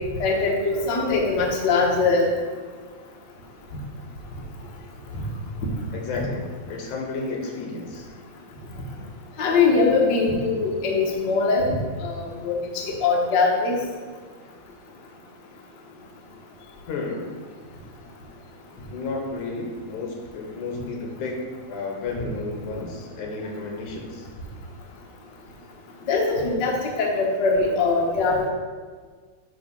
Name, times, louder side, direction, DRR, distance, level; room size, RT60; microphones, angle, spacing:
voice 1, 0.2-2.3 5.1-5.2 9.4-11.7 12.0-12.5 13.0-13.8 26.1-28.5, left 4 dB, 55° left, -1 dB, 1.3 m, -21 dB
voice 2, 5.9-8.1 16.9-17.4 18.9-21.4 21.7-24.3, left 3 dB, 80° left, 0 dB, 2.6 m, -32 dB
8.7 x 3.5 x 5.9 m, 1.5 s
omnidirectional pair, 3.5 m